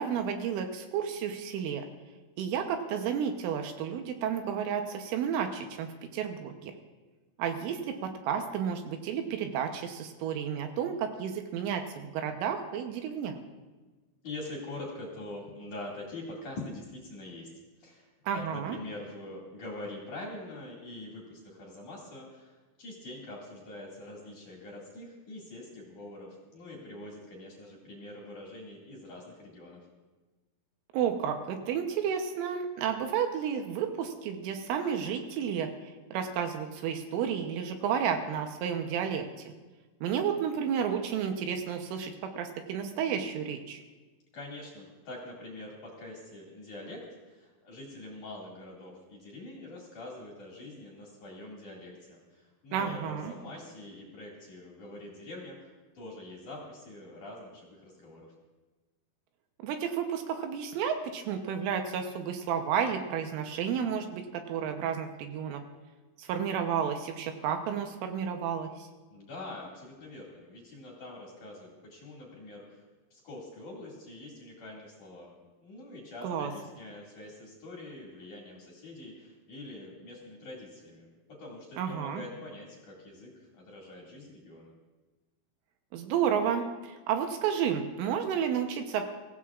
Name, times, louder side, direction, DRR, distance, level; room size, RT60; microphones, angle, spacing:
voice 1, 0.0-1.8 2.4-6.7 7.4-13.4 18.3-18.8 30.9-39.3 40.0-43.8 52.7-53.3 59.6-65.6 66.2-68.9 76.2-76.5 81.8-82.2 85.9-89.1, right 8 dB, 80° right, 5 dB, 3.2 m, -31 dB
voice 2, 14.2-17.5 17.8-29.8 44.3-47.0 47.3-58.3 69.1-72.8 73.1-84.7, left 2 dB, 50° left, -3 dB, 2.7 m, -44 dB
23.0 x 15.5 x 2.4 m, 1.2 s
omnidirectional pair, 6.0 m